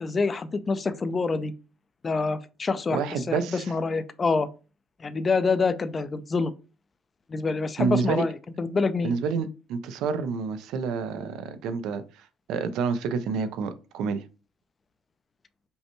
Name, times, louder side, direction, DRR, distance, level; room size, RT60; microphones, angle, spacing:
voice 1, 0.0-1.5 2.0-4.5 5.0-6.5 7.3-8.3 8.6-9.1, left 4 dB, 25° left, 0.4 m, -26 dB
voice 2, 2.9-3.6 7.8-8.2 9.0-12.0 12.5-14.2, right 5 dB, 75° right, 0.5 m, -28 dB
5.3 x 2.2 x 2.9 m
cardioid pair, 125°, 0 cm